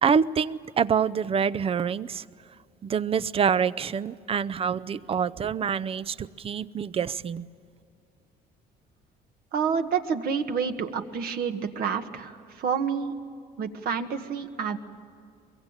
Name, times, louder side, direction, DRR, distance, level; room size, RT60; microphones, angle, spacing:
voice 1, 0.0-2.2 2.8-7.5, right 7 dB, 35° right, 18 dB, 0.6 m, -26 dB
voice 2, 9.5-13.1 13.6-14.8, right 6 dB, 65° right, 7 dB, 1.7 m, -28 dB
23.0 x 23.0 x 9.0 m, 2.4 s
cardioid pair, 110°, 17 cm